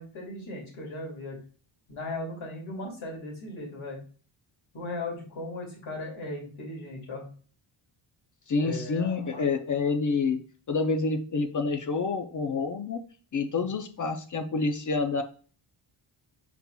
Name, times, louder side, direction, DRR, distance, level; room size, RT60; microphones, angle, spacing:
voice 1, 0.0-1.4 1.9-4.0 4.7-7.2 8.6-9.5, left 2 dB, 75° left, -1 dB, 2.2 m, -37 dB
voice 2, 8.5-10.4 10.7-13.0 13.3-15.2, left 4 dB, 40° left, 7 dB, 0.5 m, -28 dB
5.7 x 4.2 x 2.2 m, 0.40 s
wide cardioid pair, 145°, 49 cm